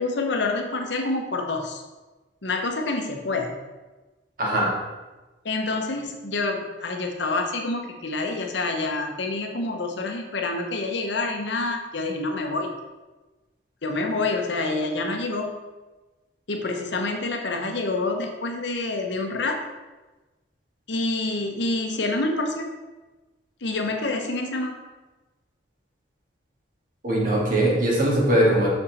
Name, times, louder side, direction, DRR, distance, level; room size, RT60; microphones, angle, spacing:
voice 1, 0.0-1.8 2.4-3.5 5.4-12.7 13.8-15.5 16.5-19.6 20.9-22.7 23.6-24.7, left 2 dB, 70° left, 3 dB, 0.9 m, -27 dB
voice 2, 4.4-4.7 27.0-28.7, right 1 dB, 45° right, -4 dB, 1.8 m, -20 dB
6.4 x 5.6 x 4.1 m, 1.2 s
head